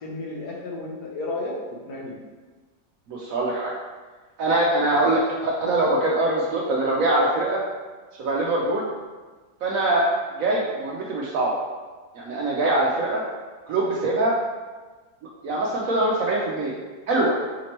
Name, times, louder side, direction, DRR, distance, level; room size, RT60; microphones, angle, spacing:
voice 1, 0.0-2.1, left 2 dB, 70° left, -2 dB, 1.3 m, -33 dB
voice 2, 3.1-3.7 4.4-7.6 8.2-8.8 9.6-10.1 10.4-11.6 12.2-13.2 13.7-14.4 15.4-16.8 17.1-17.3, right 2 dB, 70° right, -3 dB, 0.8 m, -23 dB
4.9 x 3.0 x 2.9 m, 1.3 s
omnidirectional pair, 1.8 m